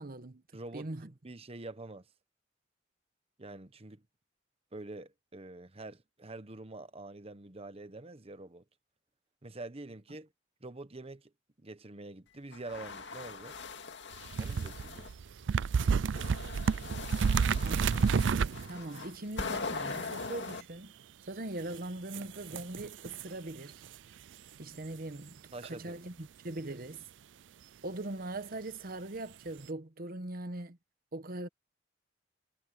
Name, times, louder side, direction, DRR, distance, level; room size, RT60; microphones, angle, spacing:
voice 1, 0.0-0.4 0.7-1.1 17.6-18.0 18.7-20.9 21.3-23.8 24.6-27.0 27.8-30.8 31.1-31.5, right 2 dB, 55° right, 1.2 m, -41 dB
voice 2, 0.5-2.0 3.4-4.0 4.7-8.6 9.4-10.3 10.6-11.3 11.6-13.6 14.4-15.1 25.5-26.0, right 2 dB, 35° right, 1.1 m, -46 dB
sound 1, 12.5-15.1 15.8-20.6, left 4 dB, 70° left, 2.3 m, -41 dB
sound 2, 14.1-19.0 19.9-20.5 21.7-21.8 22.1-23.3 23.8-23.9 26.6-26.7, right 5 dB, 80° right, 0.4 m, -30 dB
head